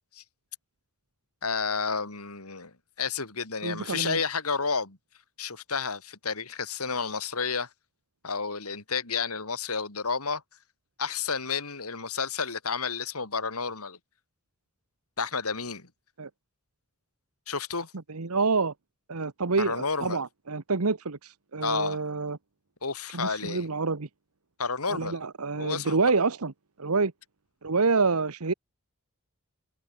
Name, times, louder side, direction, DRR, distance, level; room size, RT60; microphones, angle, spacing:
voice 1, 1.4-2.7 3.0-5.0 5.4-7.7 8.2-10.4 11.0-14.0 15.2-15.9 17.5-17.9 19.6-20.2 21.6-22.0 22.8-23.7 24.6-25.2 25.6-26.0, left 5 dB, 85° left, 3.8 m, -31 dB
voice 2, 3.6-4.2 16.2-16.3 18.1-18.7 19.1-22.4 23.1-24.1 24.9-26.5 26.8-27.1 27.6-28.5, right 4 dB, 90° right, 1.2 m, -27 dB
head